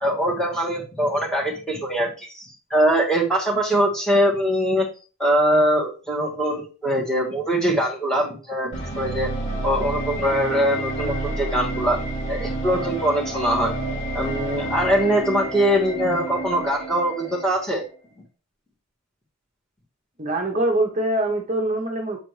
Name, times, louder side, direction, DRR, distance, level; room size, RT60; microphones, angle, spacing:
voice 1, 0.0-4.9 5.2-9.3 9.6-12.0 12.3-13.7 14.1-17.9, equal, 5° left, -3 dB, 1.8 m, -22 dB
sound 1, 8.7-17.8, right 1 dB, 55° left, 2.4 m, -29 dB
voice 2, 20.2-22.2, right 1 dB, 35° right, 1 dB, 0.9 m, -23 dB
8.0 x 4.1 x 3.2 m, 0.34 s
head